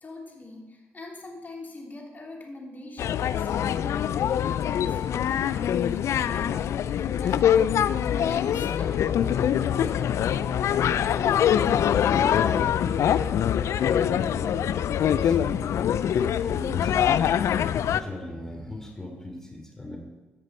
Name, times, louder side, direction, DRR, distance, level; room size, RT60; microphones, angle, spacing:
voice 1, 0.0-10.3, left 2 dB, 35° left, -1 dB, 2.9 m, -43 dB
sound 1, 3.0-18.0, left 9 dB, 65° left, 0.3 m, -24 dB
Wind instrument woodwind instrument, 6.9-15.1, right 10 dB, 30° right, 1.0 m, -47 dB
voice 2, 11.3-13.2 13.8-14.6 15.0-15.7 16.4-17.2 17.9-20.0, left 1 dB, 10° left, 1 dB, 3.0 m, -38 dB
15.0 x 5.2 x 4.3 m, 1.2 s
supercardioid pair, 65°, 5 cm